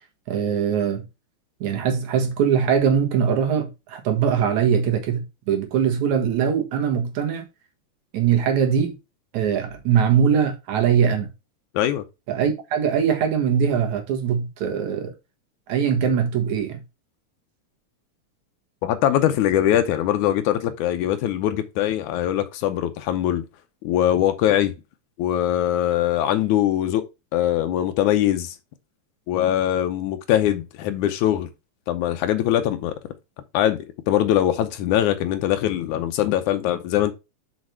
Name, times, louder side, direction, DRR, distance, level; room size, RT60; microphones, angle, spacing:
voice 1, 0.3-1.0 1.6-7.4 8.1-9.0 9.3-11.3 12.3-15.1 15.7-16.8, right 7 dB, 75° right, 2.8 m, -21 dB
voice 2, 18.8-23.4 23.8-24.7 25.2-27.0 27.3-28.6 29.3-31.5 31.9-33.0 33.5-37.1, left 11 dB, 85° left, 2.1 m, -22 dB
6.4 x 5.3 x 4.5 m
omnidirectional pair, 3.4 m